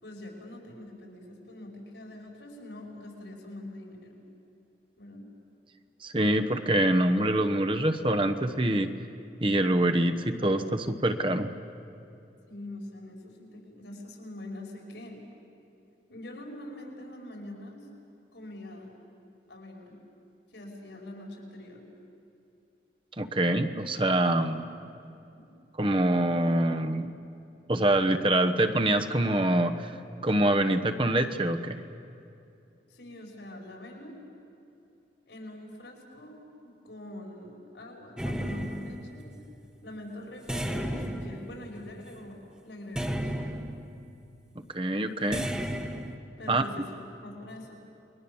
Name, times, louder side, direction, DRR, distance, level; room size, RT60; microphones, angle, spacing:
voice 1, 0.0-4.2 5.0-5.3 12.5-15.2 16.1-17.9 18.3-18.9 19.5-20.0 20.5-21.8 25.4-25.5 32.9-34.2 35.3-39.4 39.8-43.5 46.4-47.7, left 1 dB, 80° left, 0 dB, 5.6 m, -44 dB
voice 2, 6.0-8.9 9.4-11.5 23.2-24.6 25.8-27.1 27.7-29.9 30.2-31.8 44.7-45.4 46.5-46.6, right 1 dB, 30° right, 7 dB, 1.0 m, -25 dB
sound 1, 38.2-39.5 40.5-42.2 42.9-44.1 45.3-46.2, equal, 5° right, 1.2 m, -34 dB
29.5 x 22.5 x 7.2 m, 2.7 s
head